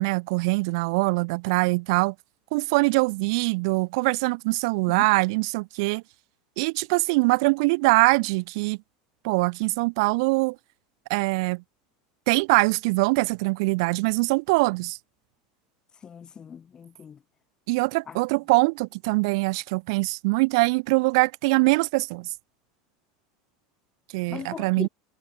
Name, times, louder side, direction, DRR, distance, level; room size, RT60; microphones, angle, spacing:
voice 1, 0.0-2.1 2.5-6.0 6.6-8.8 9.2-10.6 11.1-11.6 12.3-15.0 17.7-22.3 24.1-24.9, right 27 dB, 70° right, 0.6 m, -23 dB
voice 2, 16.0-17.2 18.1-18.2 24.3-24.9, left 7 dB, 25° left, 2.1 m, -39 dB
supercardioid pair, 115°, 3 cm